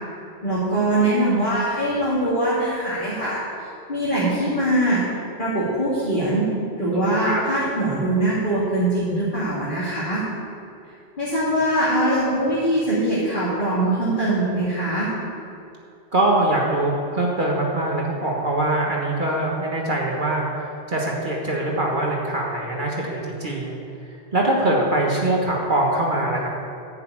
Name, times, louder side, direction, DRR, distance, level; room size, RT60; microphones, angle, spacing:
voice 1, 0.4-3.4 3.9-5.0 5.4-6.4 6.8-10.2 11.2-15.1, right 1 dB, 50° left, -10 dB, 2.7 m, -22 dB
voice 2, 6.9-7.4 16.1-23.8 24.3-26.5, right 1 dB, 50° right, -2 dB, 1.6 m, -23 dB
11.5 x 6.6 x 8.6 m, 2.6 s
omnidirectional pair, 1.1 m